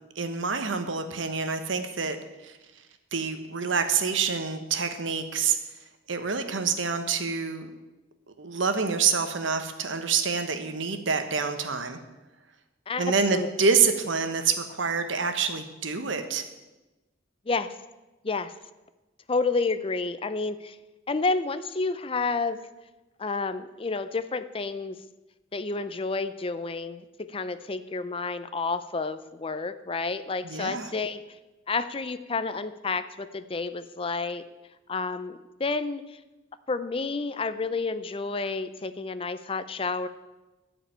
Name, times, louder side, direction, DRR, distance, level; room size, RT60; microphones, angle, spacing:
voice 1, 0.2-2.2 2.4-2.6 3.1-5.6 6.1-7.7 8.4-12.0 13.0-16.4 30.4-30.9, right 5 dB, 80° right, 7 dB, 1.2 m, -27 dB
voice 2, 19.3-20.8 21.1-22.7 23.2-25.0 25.5-27.0 27.3-31.2 31.7-34.4 34.9-36.0 36.7-40.1, left 3 dB, 30° left, 12 dB, 0.5 m, -30 dB
12.5 x 5.1 x 8.9 m, 1.1 s
head